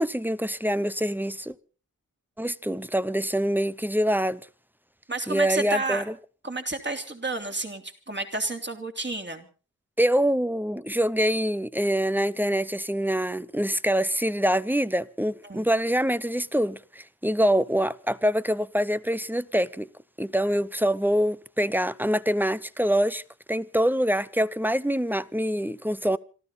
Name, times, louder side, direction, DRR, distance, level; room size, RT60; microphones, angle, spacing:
voice 1, 0.0-1.5 2.4-4.4 5.3-6.1 10.0-19.9 20.2-23.2 23.5-26.2, equal, 5° right, 0.8 m, -25 dB
voice 2, 5.1-6.0 6.4-9.5 15.4-15.7, right 2 dB, 30° right, 3.3 m, -31 dB
26.5 x 13.0 x 4.1 m
cardioid pair, 50°, 37 cm